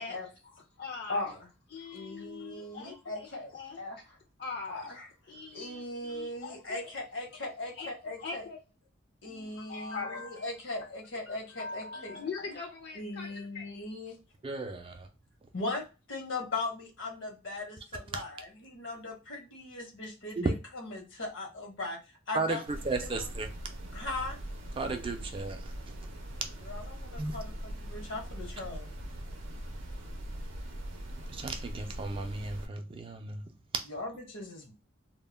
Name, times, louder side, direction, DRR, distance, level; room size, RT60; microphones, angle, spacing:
voice 1, 0.4-1.3 1.7-4.1 4.4-5.0 5.3-6.8 7.7-8.6 9.2-10.9 11.3-13.6, left 4 dB, 55° left, 0.4 m, -42 dB
voice 2, 1.9-4.0 4.7-5.1 5.5-8.4 9.2-12.2 12.9-14.2 15.5-15.8 16.1-22.0 22.3-22.6 23.0-23.1 23.9-24.4 26.6-28.9 33.9-34.7, left 2 dB, 75° left, 0.9 m, -39 dB
voice 3, 14.4-15.1 18.1-18.2 20.4-20.5 22.3-23.5 24.8-25.7 27.2-27.4 31.3-33.4, right 3 dB, 30° right, 0.3 m, -34 dB
sound 1, 22.7-32.7, right 1 dB, 80° right, 0.5 m, -41 dB
2.2 x 2.1 x 3.2 m
head